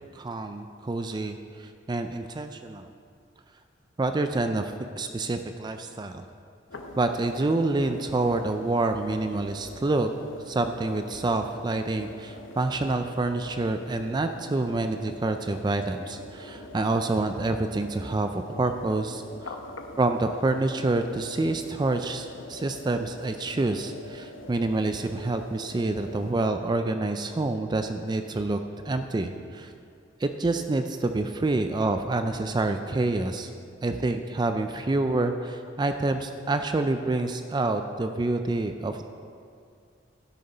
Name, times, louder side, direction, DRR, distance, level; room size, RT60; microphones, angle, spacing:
voice 1, 0.1-2.9 4.0-6.2 7.0-10.1 10.5-19.5 20.0-28.6 28.9-29.7 30.2-33.5 33.8-39.0, right 2 dB, 20° right, 7 dB, 0.3 m, -27 dB
sound 1, 6.7-26.3, left 1 dB, 80° left, 0.9 m, -44 dB
12.5 x 6.8 x 5.4 m, 2.3 s
head